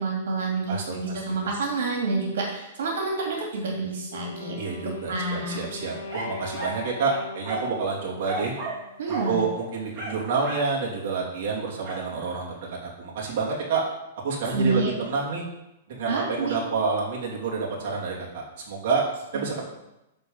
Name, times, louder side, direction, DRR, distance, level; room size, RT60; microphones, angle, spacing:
voice 1, 0.0-4.6 5.1-5.6 9.0-9.4 14.5-14.9 16.1-16.6 19.3-19.4, right 3 dB, 75° right, 0 dB, 2.4 m, -28 dB
voice 2, 0.7-1.2 4.6-8.5 9.1-13.8 14.2-15.4 15.9-19.0 19.3-19.7, right 4 dB, 45° right, -4 dB, 2.8 m, -28 dB
Wind instrument woodwind instrument, 4.1-9.1, left 3 dB, 65° left, 1.9 m, -40 dB
sound 1, 6.1-6.8 7.4-7.8 8.2-8.8 9.1-9.3 9.9-10.7 11.8-12.1, right 2 dB, 25° right, 3.5 m, -34 dB
11.0 x 4.0 x 7.2 m, 0.91 s
hypercardioid pair, 170°, 0 cm